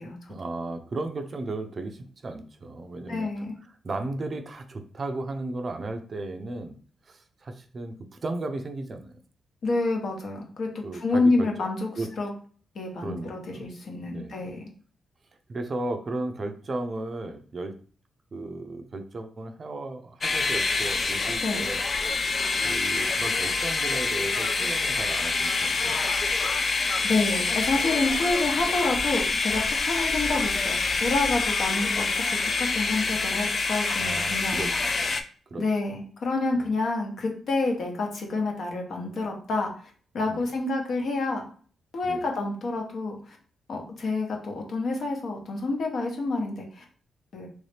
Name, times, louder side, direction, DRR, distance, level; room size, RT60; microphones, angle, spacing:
voice 1, 0.3-3.3 3.8-6.8 7.0-9.2 10.8-11.7 12.0-12.1 13.0-13.7 14.1-14.5 15.5-17.7 18.3-21.8 22.6-26.0 34.0-34.7 35.0-35.2 35.5-35.6 36.5-36.7 40.3-40.4 42.0-42.2, right 2 dB, 40° right, 7 dB, 0.4 m, -35 dB
voice 2, 3.1-3.5 9.6-11.9 12.2-12.3 12.7-14.7 21.4-21.7 27.0-30.8 31.0-32.2 32.6-34.6 35.6-39.7 40.1-41.4 41.9-43.4 43.7-46.8 47.3-47.5, left 3 dB, 65° left, 1 dB, 0.9 m, -28 dB
sound 1, 20.2-35.2, left 4 dB, 45° left, 0.3 m, -26 dB
3.1 x 2.7 x 3.3 m, 0.43 s
cardioid pair, 105°, 0 cm